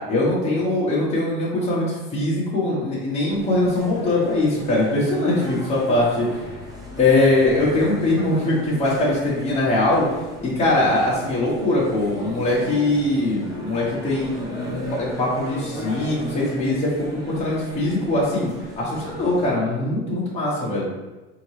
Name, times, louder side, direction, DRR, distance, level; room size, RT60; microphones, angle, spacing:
voice 1, 0.1-6.3 7.0-10.1 10.4-16.9 17.3-20.8, left 2 dB, 20° left, -7 dB, 1.2 m, -21 dB
sound 1, 3.3-19.5, equal, 10° right, 1.0 m, -37 dB
4.3 x 2.8 x 3.2 m, 1.1 s
supercardioid pair, 120°, 32 cm